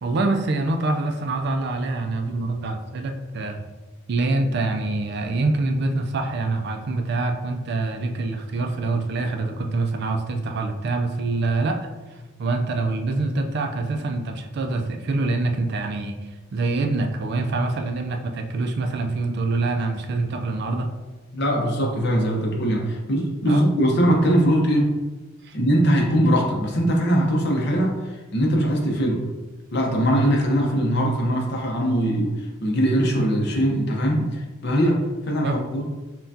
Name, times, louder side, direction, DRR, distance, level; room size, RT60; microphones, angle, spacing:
voice 1, 0.0-3.7 4.1-11.9 12.4-16.2 16.5-20.9 23.5-23.7 25.4-25.6 35.4-35.6, right 2 dB, 50° right, 5 dB, 0.4 m, -25 dB
voice 2, 21.3-24.9 25.5-29.2 29.7-35.9, equal, 55° left, -1 dB, 0.8 m, -21 dB
5.6 x 2.3 x 2.7 m, 1.2 s
head